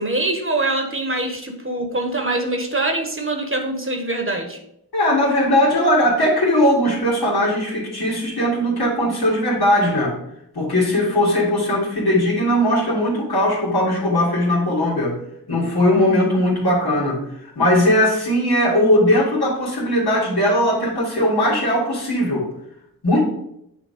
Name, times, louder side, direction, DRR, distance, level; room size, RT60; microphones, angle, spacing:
voice 1, 0.0-4.6, right 2 dB, 35° right, 4 dB, 1.2 m, -24 dB
voice 2, 4.9-10.1 10.6-15.2 15.5-17.2 17.6-22.5 23.0-23.2, left 1 dB, 90° left, -6 dB, 2.0 m, -19 dB
7.8 x 2.9 x 5.1 m, 0.77 s
cardioid pair, 45°, 37 cm